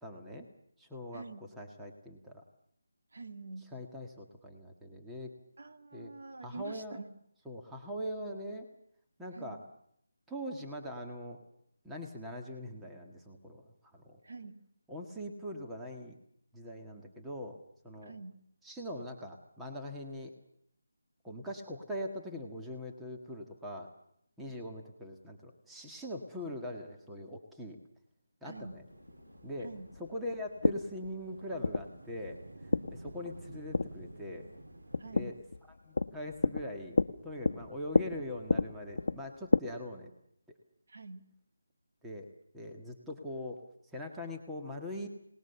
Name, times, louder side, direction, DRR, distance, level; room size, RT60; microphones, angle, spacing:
voice 1, 0.0-0.5 0.8-1.2 1.6-2.4 3.7-5.3 5.9-6.1 6.4-7.0 7.4-8.7 9.2-9.6 10.3-11.4 11.8-13.6 13.9-14.2 14.9-16.2 16.5-17.6 17.8-18.1 18.6-20.3 21.2-23.9 24.4-27.8 28.4-28.8 29.4-29.7 30.0-32.4 32.9-34.5 35.1-35.4 35.8-37.0 37.2-40.1 42.0-42.3 42.5-43.6 43.9-45.1, left 1 dB, 5° right, 0 dB, 1.7 m, -42 dB
voice 2, 1.1-1.4 3.1-3.7 5.6-7.0 9.3-9.6 14.2-14.6 18.0-18.4 28.4-28.8 29.6-29.9 35.0-35.4 40.9-41.3, right 3 dB, 60° right, 6 dB, 2.2 m, -46 dB
sound 1, 28.6-39.6, left 3 dB, 60° left, 1.1 m, -33 dB
sound 2, 28.9-35.4, right 2 dB, 80° right, 2.0 m, -52 dB
27.5 x 19.5 x 7.0 m, 0.70 s
figure-of-eight pair, 170°, 0 cm